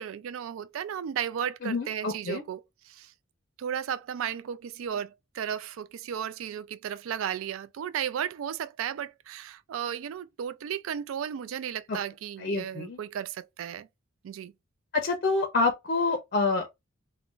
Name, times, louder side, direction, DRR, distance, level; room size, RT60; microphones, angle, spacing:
voice 1, 0.0-3.1 3.6-13.9 14.2-14.5, right 9 dB, 80° right, 0.3 m, -34 dB
voice 2, 1.6-2.4 11.9-12.0 12.4-13.0 14.9-16.8, left 3 dB, 50° left, 0.5 m, -27 dB
2.4 x 2.1 x 3.7 m
head